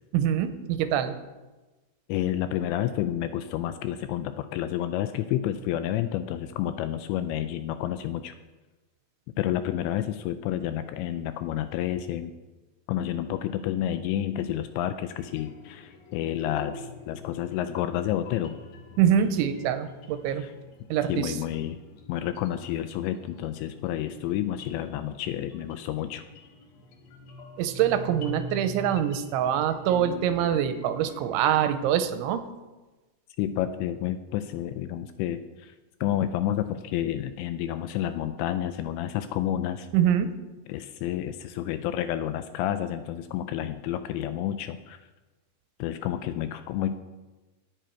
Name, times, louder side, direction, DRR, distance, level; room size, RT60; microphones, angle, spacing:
voice 1, 0.1-1.2 19.0-20.5 20.9-21.4 27.6-32.5 39.9-40.3, right 9 dB, 85° right, 10 dB, 3.0 m, -24 dB
voice 2, 2.1-8.3 9.4-12.3 12.9-18.6 20.4-20.5 21.1-21.8 22.1-26.2 33.4-35.7 36.0-39.9 40.7-45.0 45.8-47.0, left 11 dB, 85° left, 10 dB, 2.6 m, -30 dB
sound 1, 15.1-31.9, left 2 dB, 60° left, 2.8 m, -45 dB
18.0 x 7.7 x 4.5 m, 1.2 s
omnidirectional pair, 5.5 m